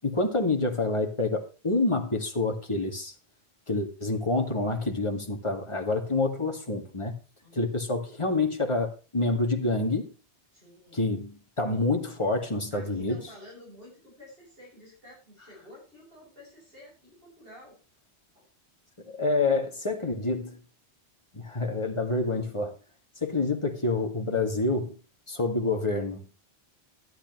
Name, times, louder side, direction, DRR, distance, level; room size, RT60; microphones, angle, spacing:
voice 1, 0.0-3.1 3.7-7.1 7.5-10.1 10.9-13.2 19.0-20.6 21.3-22.7 23.2-24.9 25.3-26.3, left 2 dB, 25° left, 2.2 m, -27 dB
voice 2, 7.4-7.7 10.5-11.0 12.7-17.8 18.3-18.5, left 1 dB, 55° right, 8.3 m, -51 dB
13.0 x 12.0 x 3.1 m
omnidirectional pair, 1.1 m